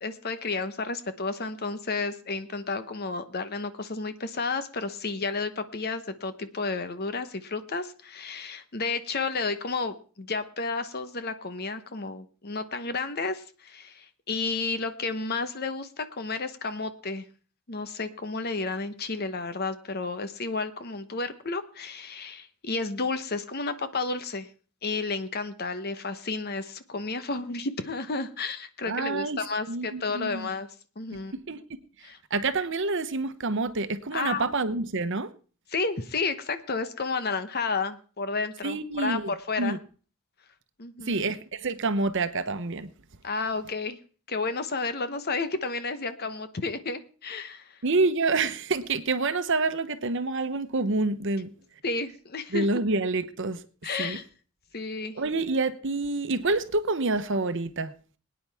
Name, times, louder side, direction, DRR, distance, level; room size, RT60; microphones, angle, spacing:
voice 1, 0.0-17.2 17.7-24.5 24.8-30.7 31.0-31.3 32.0-32.2 34.1-34.5 35.7-39.8 40.8-41.3 43.2-44.0 44.3-47.8 51.8-52.7 53.8-54.2 54.7-55.2, left 4 dB, 45° left, 1.0 m, -32 dB
voice 2, 28.9-29.4 29.7-30.5 31.5-31.6 32.3-35.3 38.6-39.8 41.1-42.9 47.8-51.5 52.5-53.6 54.0-54.2 55.2-57.9, right 3 dB, 55° right, 1.0 m, -27 dB
21.5 x 9.5 x 3.5 m
head